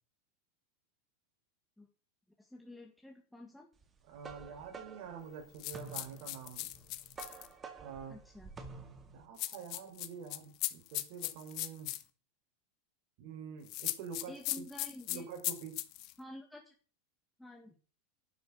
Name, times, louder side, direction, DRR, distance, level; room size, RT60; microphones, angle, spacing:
voice 1, 2.4-3.7 8.1-8.5 14.3-15.3 16.2-16.7 17.4-17.8, left 1 dB, 5° left, 1.8 m, -50 dB
sound 1, 3.8-9.3, right 4 dB, 20° right, 1.9 m, -50 dB
voice 2, 4.1-6.7 7.8-8.2 9.1-11.9 13.2-14.6 15.1-15.8, right 6 dB, 55° right, 4.1 m, -47 dB
sound 2, 5.6-7.5 9.4-12.0 13.7-16.1, left 17 dB, 45° left, 1.2 m, -38 dB
12.0 x 6.3 x 9.4 m
supercardioid pair, 145°, 0 cm